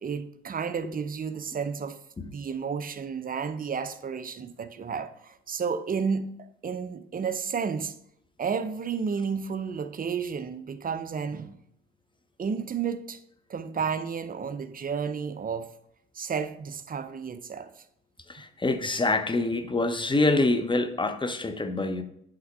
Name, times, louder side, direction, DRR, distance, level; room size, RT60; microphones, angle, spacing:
voice 1, 0.0-2.0 2.2-8.0 8.4-11.6 12.4-13.2 13.5-15.7 16.1-17.7, right 6 dB, 25° right, 0.6 m, -32 dB
voice 2, 18.3-22.0, left 2 dB, 15° left, 0.7 m, -26 dB
8.0 x 3.6 x 4.7 m
figure-of-eight pair, 45°, 36 cm